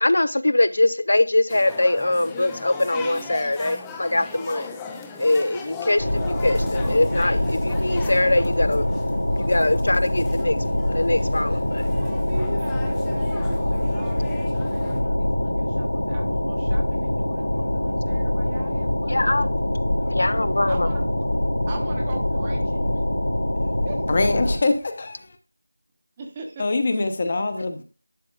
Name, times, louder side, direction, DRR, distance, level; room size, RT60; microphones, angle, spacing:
voice 1, 0.0-4.7 5.2-8.9 9.5-10.6 10.9-11.8 19.1-19.5 20.1-20.9, left 2 dB, 60° left, 0.4 m, -22 dB
sound 1, 1.5-15.0, left 4 dB, 5° left, 0.5 m, -39 dB
sound 2, 6.0-24.6, left 1 dB, 90° left, 2.7 m, -24 dB
voice 2, 12.0-19.6 20.0-21.3 21.7-22.9 23.6-24.0 26.2-26.7 27.0-27.3, right 3 dB, 15° right, 0.9 m, -40 dB
voice 3, 24.1-25.2 26.6-27.8, left 3 dB, 30° left, 0.9 m, -23 dB
11.5 x 6.2 x 2.3 m
figure-of-eight pair, 175°, 0 cm